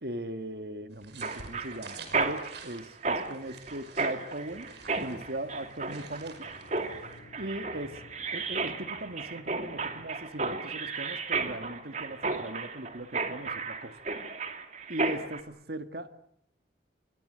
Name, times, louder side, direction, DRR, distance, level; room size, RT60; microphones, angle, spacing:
voice 1, 0.0-4.7 5.0-6.5 7.4-8.0 8.3-14.0 14.9-16.2, right 1 dB, 60° right, 9 dB, 1.6 m, -38 dB
sound 1, 0.9-7.2, right 4 dB, 75° right, 5.6 m, -50 dB
Mechanisms, 1.2-15.4, right 4 dB, 40° right, 2.8 m, -34 dB
sound 2, 4.6-10.1, left 1 dB, 70° left, 7.4 m, -55 dB
29.0 x 23.0 x 7.7 m, 0.71 s
head